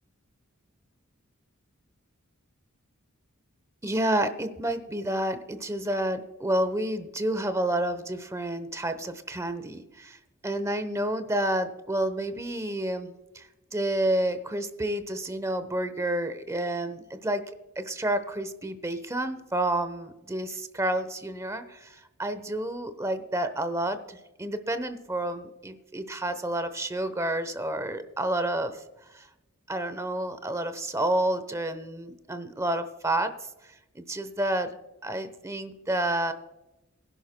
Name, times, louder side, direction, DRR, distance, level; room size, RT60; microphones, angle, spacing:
voice 1, 3.8-10.2 10.4-17.4 17.8-28.8 29.1-29.3 29.7-33.3 33.9-34.7 35.0-36.3, right 1 dB, 15° right, 11 dB, 0.8 m, -29 dB
21.5 x 11.0 x 2.2 m, 1.0 s
head